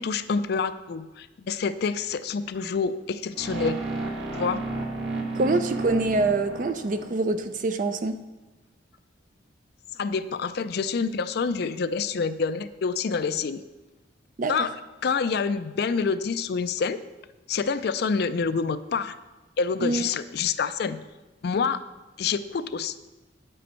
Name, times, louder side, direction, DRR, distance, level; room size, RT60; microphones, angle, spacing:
voice 1, 0.0-3.8 4.3-4.6 9.9-13.6 14.5-14.7 15.0-17.0 17.5-19.1 19.6-21.0 21.4-21.8 22.2-22.9, left 5 dB, 55° left, 13 dB, 0.4 m, -27 dB
sound 1, 3.3-7.4, right 3 dB, 80° right, 1.7 m, -32 dB
voice 2, 5.3-8.2 14.4-14.5 19.8-20.0, right 3 dB, 45° right, 9 dB, 0.5 m, -25 dB
9.2 x 7.7 x 4.4 m, 1.2 s
head